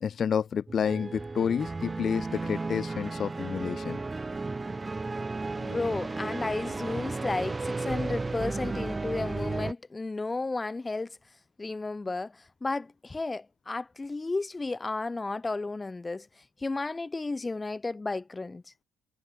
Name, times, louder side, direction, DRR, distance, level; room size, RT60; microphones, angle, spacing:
voice 1, 0.0-4.0, left 7 dB, 50° left, 0.5 m, -29 dB
sound 1, 0.7-9.7, right 3 dB, 25° right, 0.5 m, -34 dB
voice 2, 5.6-11.2 11.6-16.3 16.6-18.6, left 3 dB, 25° left, 1.8 m, -33 dB
supercardioid pair, 70°, 0 cm